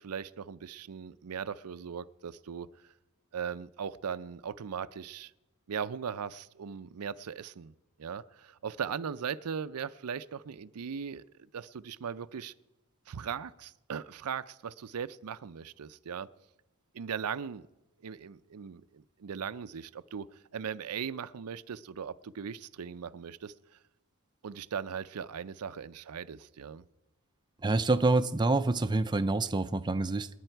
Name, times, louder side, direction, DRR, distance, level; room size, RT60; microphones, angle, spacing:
voice 1, 0.0-2.7 3.3-5.3 5.7-7.7 8.0-11.2 11.5-12.5 13.1-16.3 16.9-17.6 18.0-23.5 24.4-26.8, right 7 dB, 85° right, 0.5 m, -38 dB
voice 2, 27.6-30.3, right 2 dB, 20° right, 0.4 m, -27 dB
27.5 x 9.9 x 4.6 m
head